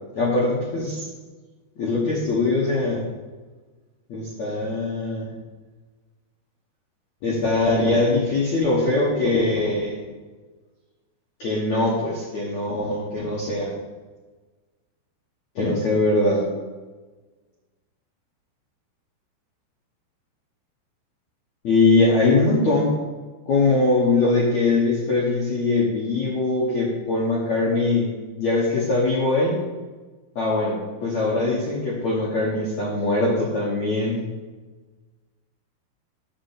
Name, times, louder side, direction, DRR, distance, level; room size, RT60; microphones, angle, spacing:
voice 1, 0.1-1.0 1.8-3.1 4.1-5.3 7.2-10.0 11.4-13.7 15.5-16.4 21.6-23.0 23.5-29.6 30.3-34.2, left 2 dB, 80° left, -5 dB, 1.5 m, -22 dB
10.0 x 4.6 x 7.5 m, 1.3 s
omnidirectional pair, 5.7 m